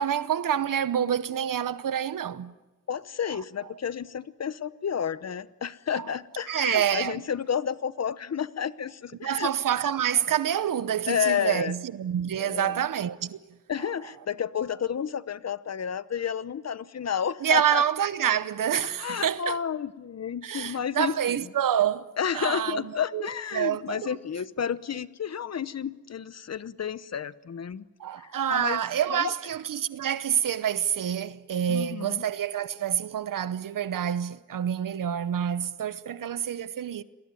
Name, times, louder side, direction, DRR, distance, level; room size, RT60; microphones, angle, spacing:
voice 1, 0.0-2.5 6.5-7.2 9.2-13.4 17.4-19.6 20.4-22.8 23.1-24.1 28.0-37.0, right 9 dB, 85° right, 0.9 m, -27 dB
voice 2, 2.9-9.5 11.1-11.7 12.4-12.8 13.7-17.8 19.0-21.1 22.2-27.9 28.5-28.8 29.1-29.3 31.7-32.2, left 8 dB, 55° left, 1.0 m, -31 dB
28.5 x 21.0 x 9.7 m
wide cardioid pair, 140°, 32 cm